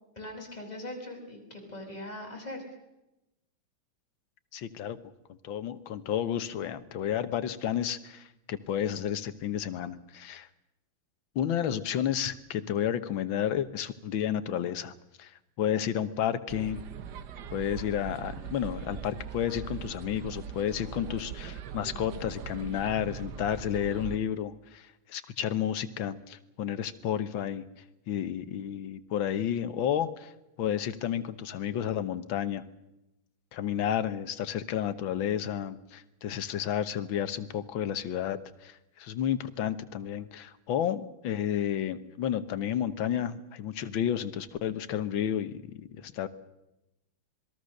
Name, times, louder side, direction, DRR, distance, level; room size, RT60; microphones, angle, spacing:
voice 1, 0.2-2.6, left 1 dB, 20° left, -1 dB, 6.1 m, -41 dB
voice 2, 4.5-5.0 5.4-10.5 11.4-16.8 17.5-27.6 28.1-30.3 30.6-32.6 33.5-46.3, left 9 dB, 70° left, 12 dB, 1.8 m, -31 dB
sound 1, 16.5-24.2, right 8 dB, 60° right, 1.4 m, -41 dB
26.5 x 21.0 x 6.6 m, 0.93 s
omnidirectional pair, 2.3 m